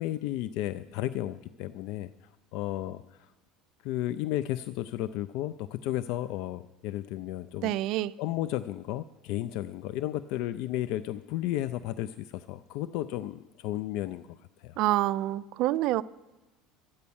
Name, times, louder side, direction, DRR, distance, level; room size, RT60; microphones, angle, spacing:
voice 1, 0.0-2.1 2.5-3.0 3.8-7.7 8.2-14.2 14.6-14.8, left 14 dB, 65° left, 14 dB, 0.3 m, -33 dB
voice 2, 7.6-8.1 14.8-16.0, right 15 dB, 55° right, 18 dB, 0.3 m, -27 dB
13.0 x 9.5 x 7.0 m, 1.1 s
cardioid pair, 145°, 0 cm